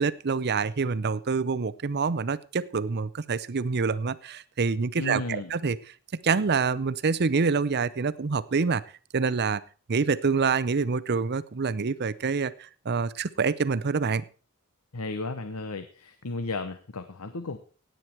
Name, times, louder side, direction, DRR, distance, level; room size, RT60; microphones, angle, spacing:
voice 1, 0.0-5.8 6.2-8.8 9.1-9.6 9.9-14.2, right 5 dB, 50° right, 17 dB, 0.6 m, -26 dB
voice 2, 5.0-5.5 14.9-17.6, left 3 dB, 85° left, 10 dB, 1.0 m, -34 dB
16.5 x 9.3 x 4.5 m, 0.38 s
head